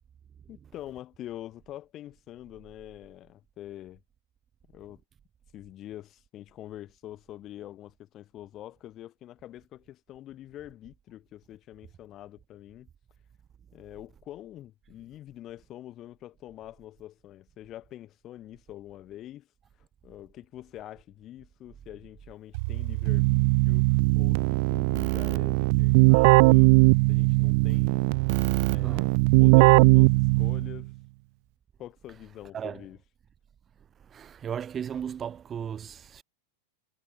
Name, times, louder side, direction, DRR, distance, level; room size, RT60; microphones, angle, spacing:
voice 1, 0.5-4.0 4.7-5.0 5.5-12.9 13.7-19.5 20.0-23.8 24.1-26.8 27.1-28.2 28.6-29.1 29.4-30.9 31.8-33.0, left 13 dB, 30° left, 4.0 m, -45 dB
Keyboard (musical), 22.5-30.8, right 29 dB, 45° right, 0.9 m, -20 dB
voice 2, 28.8-29.1 32.5-32.8 34.1-36.2, right 8 dB, 25° right, 1.1 m, -36 dB
figure-of-eight pair, 90°, 0 cm